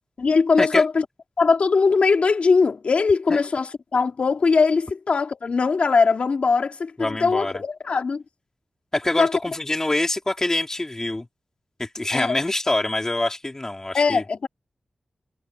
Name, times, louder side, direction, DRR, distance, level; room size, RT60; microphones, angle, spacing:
voice 1, 0.2-1.1 1.4-8.2 9.2-9.4 12.1-12.4 13.9-14.5, left 4 dB, 65° left, 2.2 m, -20 dB
voice 2, 7.0-7.5 8.9-11.3 11.8-14.2, left 2 dB, 25° left, 2.9 m, -25 dB
wide cardioid pair, 75°, 2 cm